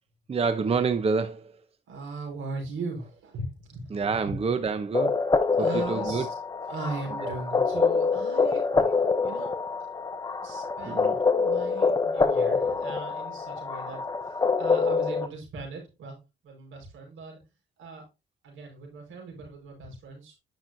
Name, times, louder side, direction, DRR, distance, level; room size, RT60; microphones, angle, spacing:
voice 1, 0.3-1.5 3.9-5.2 5.6-6.3 7.2-7.4 8.7-8.9 10.9-11.2, right 5 dB, 30° right, 0.8 m, -28 dB
voice 2, 1.9-4.4 5.6-6.3 6.7-8.7 9.2-9.6 10.4-11.1 11.4-14.0 14.3-16.2 16.4-17.4 17.8-18.0 18.4-20.4, right 3 dB, 80° right, 4.8 m, -38 dB
sound 1, 4.9-15.3, left 4 dB, 20° left, 0.8 m, -26 dB
10.0 x 6.2 x 2.7 m
cardioid pair, 90°, 20 cm